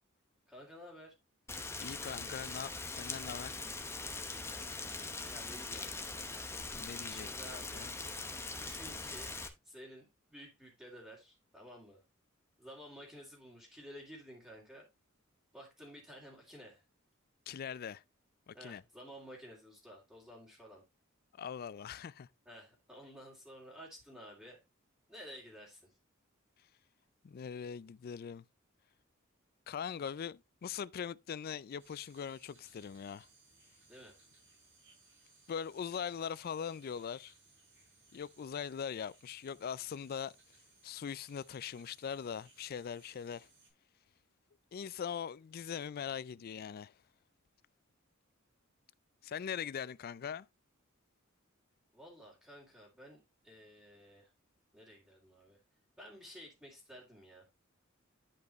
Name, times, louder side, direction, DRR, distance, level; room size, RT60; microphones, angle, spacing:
voice 1, 0.5-1.1 4.2-6.2 7.1-7.9 8.6-9.3 9.6-12.0 12.6-14.9 15.5-16.8 18.5-20.8 22.5-24.6 25.1-26.0 33.9-34.2 51.9-53.2 53.4-54.3 54.7-55.6 56.0-57.5, equal, 5° right, 2.6 m, -53 dB
Rain, 1.5-9.5, left 3 dB, 15° left, 0.9 m, -42 dB
voice 2, 1.8-3.6 6.8-7.9 17.5-18.0 18.5-18.8 21.3-22.3 27.2-28.4 29.7-33.3 35.5-37.3 38.1-40.3 40.8-43.5 44.7-46.9 49.2-50.5, left 7 dB, 45° left, 0.3 m, -41 dB
sound 1, 31.8-43.7, right 3 dB, 60° right, 6.2 m, -65 dB
10.5 x 5.3 x 3.0 m
head